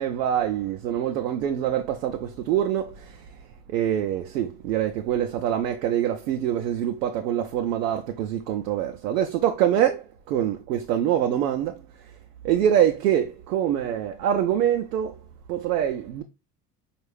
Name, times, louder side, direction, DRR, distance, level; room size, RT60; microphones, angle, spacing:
voice 1, 0.0-2.9 3.7-11.7 12.4-15.1 15.5-16.2, right 10 dB, 80° right, 0.6 m, -24 dB
4.4 x 2.4 x 3.2 m
hypercardioid pair, 70°, 47 cm